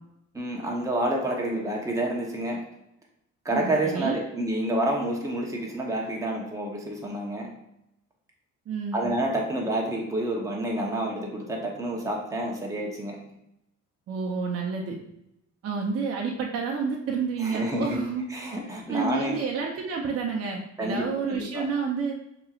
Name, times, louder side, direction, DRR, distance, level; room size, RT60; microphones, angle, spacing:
voice 1, 0.3-2.6 3.4-7.5 8.9-13.2 17.4-18.0 18.3-19.3 20.8-21.6, right 1 dB, 10° right, -2 dB, 0.9 m, -29 dB
voice 2, 3.5-4.2 8.7-9.1 14.1-15.0 15.6-18.2 18.9-22.1, right 5 dB, 50° right, 0 dB, 0.6 m, -29 dB
6.1 x 2.9 x 2.4 m, 0.82 s
cardioid pair, 90°, 30 cm